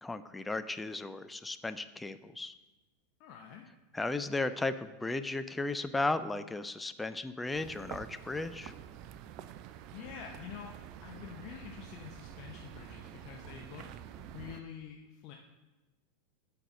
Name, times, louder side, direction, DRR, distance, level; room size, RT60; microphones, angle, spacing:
voice 1, 0.0-2.5 3.9-8.7, left 2 dB, 10° left, 11 dB, 0.4 m, -35 dB
voice 2, 3.2-3.7 9.9-10.7 11.0-13.9 14.1-15.3, left 8 dB, 50° left, 1 dB, 0.9 m, -47 dB
sound 1, 7.5-14.6, right 10 dB, 50° right, 0.5 m, -48 dB
8.5 x 4.7 x 6.6 m, 1.1 s
figure-of-eight pair, 85°, 0 cm